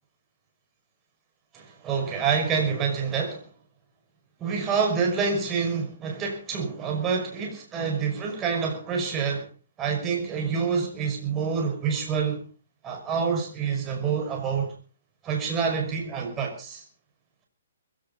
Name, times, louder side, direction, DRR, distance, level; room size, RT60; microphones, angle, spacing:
voice 1, 1.5-3.5 4.4-9.5 9.8-12.4 12.8-14.7 15.2-16.8, right 6 dB, 15° right, 5.6 m, -27 dB
21.5 x 16.5 x 4.0 m
hypercardioid pair, 160°, 0 cm